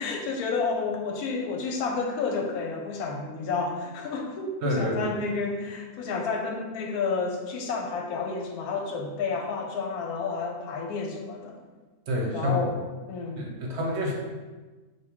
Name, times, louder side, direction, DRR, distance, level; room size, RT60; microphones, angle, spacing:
voice 1, 0.0-11.6 12.3-12.7 13.1-13.4, left 4 dB, 80° left, 2 dB, 1.1 m, -30 dB
voice 2, 4.6-5.1 12.1-12.7 13.4-14.1, left 1 dB, 55° right, -1 dB, 1.0 m, -28 dB
3.5 x 2.6 x 4.6 m, 1.3 s
omnidirectional pair, 1.6 m